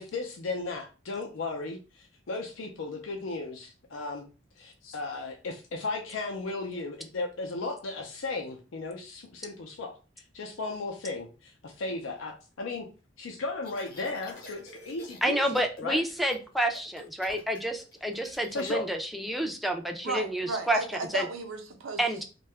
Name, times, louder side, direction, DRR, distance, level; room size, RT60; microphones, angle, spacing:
voice 1, 0.0-4.2 4.6-10.0 10.3-12.9 13.2-16.0 18.5-18.9, left 3 dB, 80° left, 0.5 m, -35 dB
sound 1, 13.6-15.2 15.5-15.8 16.1-18.7, left 2 dB, 45° left, 0.8 m, -48 dB
voice 2, 15.2-20.8 21.1-21.3 22.0-22.2, right 1 dB, ahead, 0.3 m, -29 dB
voice 3, 20.0-22.0, right 3 dB, 90° right, 0.6 m, -34 dB
2.7 x 2.2 x 3.3 m
head